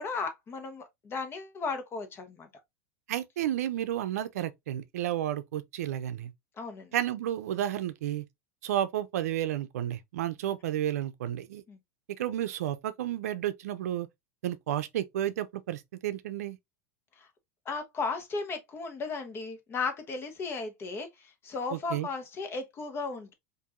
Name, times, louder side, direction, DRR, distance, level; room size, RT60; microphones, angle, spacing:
voice 1, 0.0-2.5 6.6-6.9 11.7-11.8 17.2-17.3 17.6-23.3, left 4 dB, 30° left, 1.1 m, -35 dB
voice 2, 3.1-6.3 6.9-8.2 8.6-11.6 12.2-14.1 14.4-16.6 21.7-22.1, right 12 dB, 85° right, 0.5 m, -32 dB
4.5 x 2.6 x 2.4 m
supercardioid pair, 120°, 8 cm